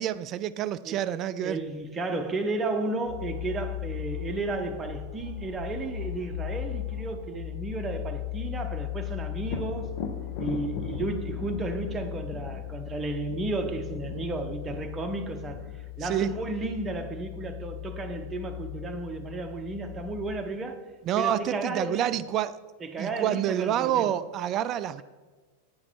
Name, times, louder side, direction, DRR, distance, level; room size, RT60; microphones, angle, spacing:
voice 1, 0.0-1.6 16.0-16.4 21.0-22.6 23.0-25.0, right 11 dB, 35° right, 0.3 m, -28 dB
voice 2, 0.8-9.9 10.4-15.6 16.0-22.0 22.8-24.1, right 2 dB, 20° right, 0.8 m, -33 dB
sound 1, 3.0-20.4, left 18 dB, 85° left, 2.0 m, -37 dB
Thunder, 9.4-17.1 20.7-20.8 21.3-22.2, left 5 dB, 50° left, 0.8 m, -40 dB
9.3 x 5.9 x 4.5 m
figure-of-eight pair, 90°, 0 cm